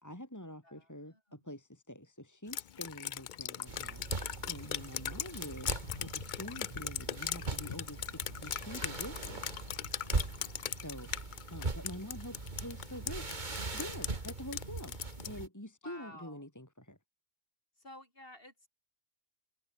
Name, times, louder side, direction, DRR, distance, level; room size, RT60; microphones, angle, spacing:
voice 1, 0.0-9.5 10.8-13.3 13.7-15.0 15.2-17.0, left 1 dB, 10° left, 3.5 m, -46 dB
voice 2, 0.6-1.5 10.2-10.8 14.1-14.3 15.8-16.5 17.8-18.7, left 1 dB, 40° left, 8.2 m, -54 dB
Drip, 2.5-15.4, left 9 dB, 55° left, 0.5 m, -40 dB
sound 1, 3.7-15.5, right 3 dB, 35° right, 2.2 m, -41 dB
omnidirectional pair, 1.4 m